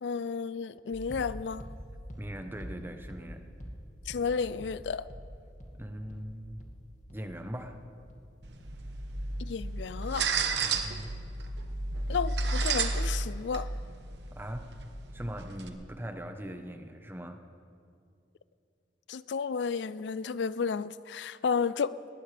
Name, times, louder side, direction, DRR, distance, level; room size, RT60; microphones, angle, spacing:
voice 1, 0.0-1.7 4.1-5.1 9.4-10.3 12.1-13.7 19.1-22.1, left 5 dB, 80° left, 0.4 m, -32 dB
Lucifer beat, 0.9-9.3 9.6-10.1, equal, 45° left, 2.2 m, -46 dB
voice 2, 2.2-3.5 5.7-6.6 7.1-7.8 10.6-11.1 14.3-14.7 15.1-17.4, equal, 15° right, 1.0 m, -40 dB
sound 1, 8.4-15.7, right 3 dB, 70° right, 1.2 m, -33 dB
20.0 x 19.5 x 3.4 m
head